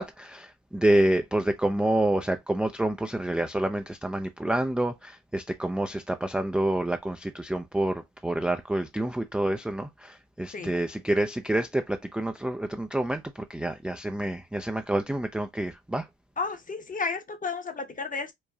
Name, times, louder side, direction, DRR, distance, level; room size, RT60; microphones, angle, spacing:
voice 1, 0.0-16.1, right 1 dB, 5° right, 0.3 m, -28 dB
voice 2, 16.4-18.3, left 4 dB, 25° left, 0.8 m, -32 dB
4.7 x 2.2 x 2.6 m
cardioid pair, 90°, 30 cm